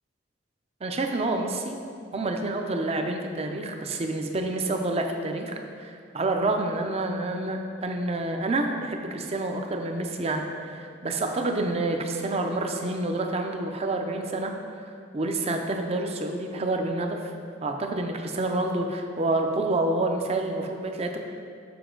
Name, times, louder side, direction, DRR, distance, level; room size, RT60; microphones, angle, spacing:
voice 1, 0.8-1.7 2.1-5.5 5.8-17.3 17.6-21.2, right 2 dB, 35° right, 4 dB, 0.5 m, -28 dB
6.8 x 5.3 x 3.8 m, 2.3 s
head